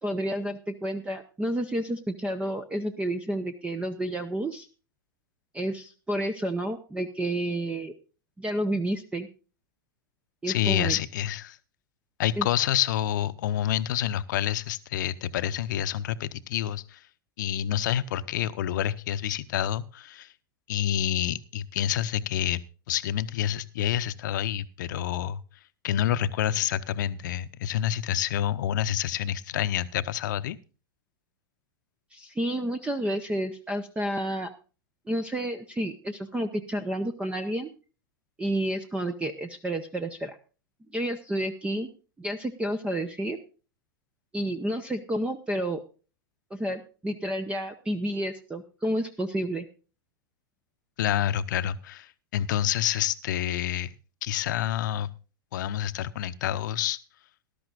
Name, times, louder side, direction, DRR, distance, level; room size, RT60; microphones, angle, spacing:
voice 1, 0.0-4.7 5.5-7.9 8.4-9.3 10.4-11.0 12.4-12.5 32.1-34.5 35.1-37.7 38.4-40.4 40.9-41.9 42.2-43.4 44.3-45.8 46.5-49.7, right 1 dB, 10° right, 12 dB, 0.9 m, -30 dB
voice 2, 10.5-11.6 12.2-17.0 17.4-20.3 20.7-22.6 22.9-25.4 25.8-30.6 51.0-53.9 54.2-55.1 55.5-57.0, left 11 dB, 60° left, 13 dB, 0.8 m, -28 dB
19.5 x 12.0 x 2.5 m, 0.35 s
figure-of-eight pair, 95°, 12 cm